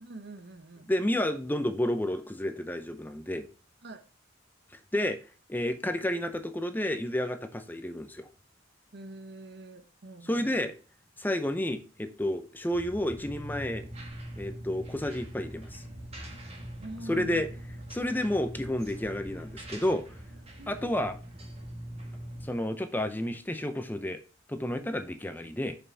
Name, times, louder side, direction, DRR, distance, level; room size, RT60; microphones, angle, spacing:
voice 1, 0.0-0.9 3.8-4.1 8.9-10.6 16.8-17.4 20.6-21.1, right 2 dB, 55° right, 8 dB, 0.9 m, -45 dB
voice 2, 0.9-3.5 4.9-5.2 5.5-8.3 10.2-10.7 11.2-13.9 14.4-15.8 17.1-17.5 17.9-20.0 20.7-21.2 22.4-24.2 24.5-25.8, left 1 dB, 10° left, 8 dB, 0.6 m, -30 dB
sound 1, 12.7-22.5, right 1 dB, 30° right, 1.6 m, -42 dB
6.9 x 5.5 x 3.3 m, 0.35 s
head